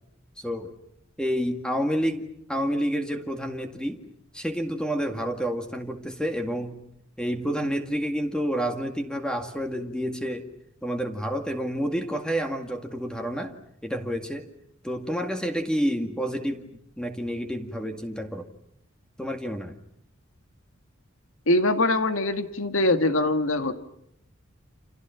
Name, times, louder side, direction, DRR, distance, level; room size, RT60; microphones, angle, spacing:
voice 1, 0.4-0.7 1.2-4.0 4.3-6.8 7.2-10.5 10.8-13.6 13.8-14.5 14.8-18.5 19.2-19.7, equal, 5° left, 4 dB, 2.0 m, -29 dB
voice 2, 21.5-23.7, left 2 dB, 80° left, 8 dB, 2.0 m, -23 dB
29.5 x 28.0 x 5.9 m, 0.73 s
head